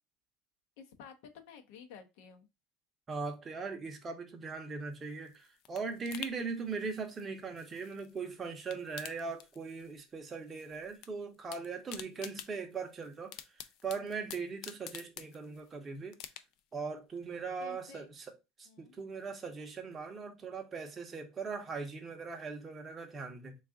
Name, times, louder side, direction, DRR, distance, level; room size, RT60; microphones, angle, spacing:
voice 1, 0.8-2.5 17.6-18.1 18.7-19.0, left 6 dB, 65° left, 0.7 m, -52 dB
voice 2, 3.1-13.4 13.8-16.2 16.7-18.3 18.6-23.5, right 4 dB, 15° right, 0.6 m, -40 dB
sound 1, 4.9-8.2 8.5-10.0 10.3-11.1 11.3-15.7 16.1-16.8 17.2-17.3, left 10 dB, 50° left, 0.3 m, -49 dB
3.6 x 2.3 x 3.6 m
cardioid pair, 165°, 0 cm